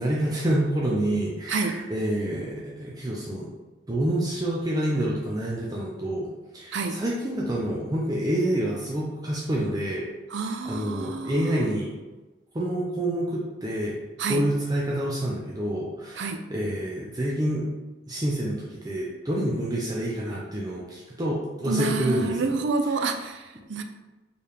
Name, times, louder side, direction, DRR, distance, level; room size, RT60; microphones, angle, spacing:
voice 1, 0.0-3.5 3.9-6.3 6.5-10.1 10.4-11.9 12.5-14.0 14.3-17.7 18.1-22.5 22.9-23.0, right 1 dB, 20° right, -4 dB, 0.5 m, -28 dB
voice 2, 1.5-1.8 6.7-7.0 10.3-11.7 14.2-14.4 16.2-16.4 21.6-23.8, right 4 dB, 80° right, 6 dB, 0.5 m, -28 dB
4.5 x 3.3 x 3.4 m, 1.1 s
head